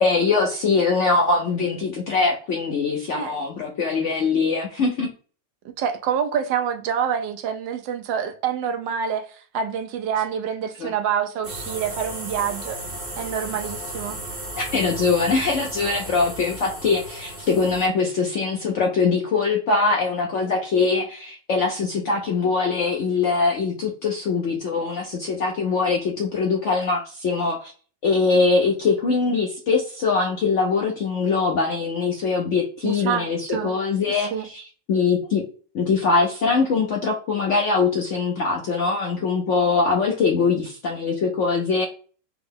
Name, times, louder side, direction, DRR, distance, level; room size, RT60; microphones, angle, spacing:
voice 1, 0.0-5.1 10.8-10.9 14.7-27.7 28.0-34.6 34.9-35.4 35.7-41.9, left 4 dB, 65° left, 0.7 m, -22 dB
voice 2, 3.1-3.4 5.8-12.8 13.2-14.2 32.8-33.7 34.3-34.5, right 8 dB, 90° right, 1.3 m, -27 dB
sound 1, 11.4-17.9, right 1 dB, 30° right, 0.7 m, -35 dB
4.7 x 2.0 x 3.6 m
omnidirectional pair, 1.9 m